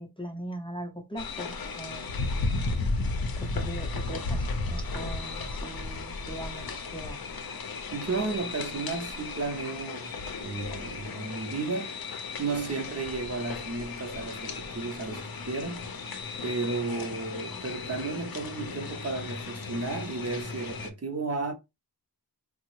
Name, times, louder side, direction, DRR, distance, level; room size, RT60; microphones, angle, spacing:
voice 1, 0.0-2.1 3.4-7.3, right 1 dB, 15° left, 0.5 m, -40 dB
sound 1, 1.2-20.9, left 3 dB, 65° left, 0.6 m, -35 dB
voice 2, 7.9-10.1 10.4-11.9 12.4-15.9 16.4-21.5, right 3 dB, 40° right, 0.6 m, -33 dB
3.4 x 2.0 x 3.0 m
wide cardioid pair, 55°, 39 cm